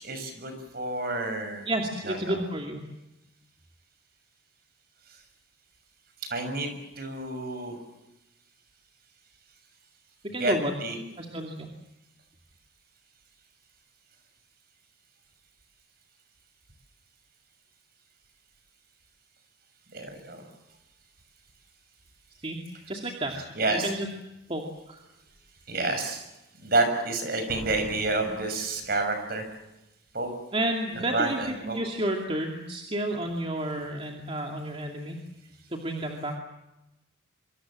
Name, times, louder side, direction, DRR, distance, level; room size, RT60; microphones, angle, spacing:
voice 1, 0.0-1.7 2.1-2.4 6.3-7.8 10.4-10.5 10.8-11.0 19.9-20.4 23.5-23.9 25.7-26.2 26.6-29.4 30.1-30.3 31.1-31.8, right 2 dB, 50° right, 7 dB, 6.5 m, -29 dB
voice 2, 1.7-2.9 10.3-10.7 11.2-11.7 22.4-22.6 22.9-23.3 23.7-24.1 24.5-25.0 30.5-35.2 35.7-36.3, right 1 dB, 30° right, 2 dB, 2.5 m, -31 dB
Slam, 24.3-24.4 25.0-25.4 27.5-29.4 29.6-29.7, equal, 80° right, 6.9 m, -45 dB
25.5 x 25.0 x 7.6 m, 0.94 s
head